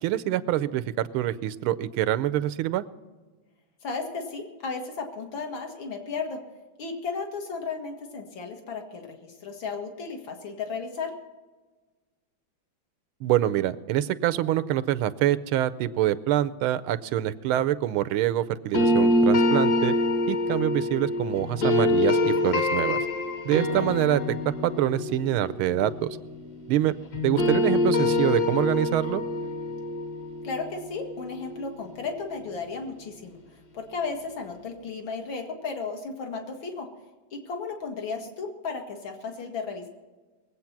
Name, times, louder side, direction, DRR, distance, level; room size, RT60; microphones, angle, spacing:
voice 1, 0.0-2.8 13.2-19.9 20.3-23.0 23.4-26.1 26.7-26.9 27.2-29.2, right 13 dB, 90° right, 14 dB, 1.5 m, -25 dB
voice 2, 3.8-6.4 6.8-11.1 23.7-23.9 30.4-33.4 33.7-36.9 37.3-39.9, left 4 dB, 65° left, 3 dB, 2.5 m, -34 dB
sound 1, 18.7-26.8 27.1-32.1, left 2 dB, 50° left, 2.1 m, -25 dB
21.5 x 8.2 x 5.9 m, 1.3 s
omnidirectional pair, 2.3 m